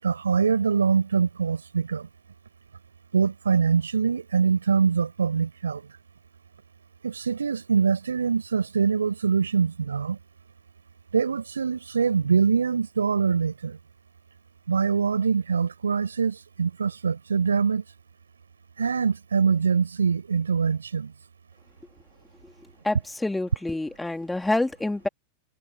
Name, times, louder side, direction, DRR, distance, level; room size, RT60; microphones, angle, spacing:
voice 1, 0.0-2.1 3.1-5.8 7.0-10.2 11.1-13.8 14.7-17.8 18.8-21.1, right 6 dB, 75° right, 6.8 m, -24 dB
voice 2, 22.8-25.1, left 2 dB, 5° left, 3.6 m, -27 dB
figure-of-eight pair, 90°, 0 cm